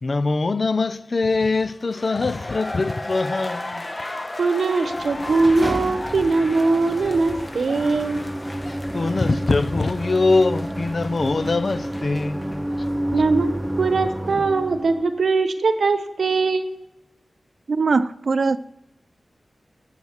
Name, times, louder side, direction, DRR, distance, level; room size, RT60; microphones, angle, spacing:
voice 1, 0.0-3.8 8.9-12.7, left 3 dB, 50° left, 0.5 m, -22 dB
sound 1, 1.7-12.6 12.9-13.0, left 2 dB, 25° left, 1.0 m, -35 dB
voice 2, 4.4-8.2 13.1-13.5 13.8-16.8, right 3 dB, 90° right, 1.0 m, -21 dB
sound 2, 4.9-15.2, right 1 dB, 10° right, 0.5 m, -30 dB
voice 3, 17.7-18.6, right 4 dB, 70° right, 0.4 m, -20 dB
12.0 x 7.5 x 7.2 m
wide cardioid pair, 110°, 0 cm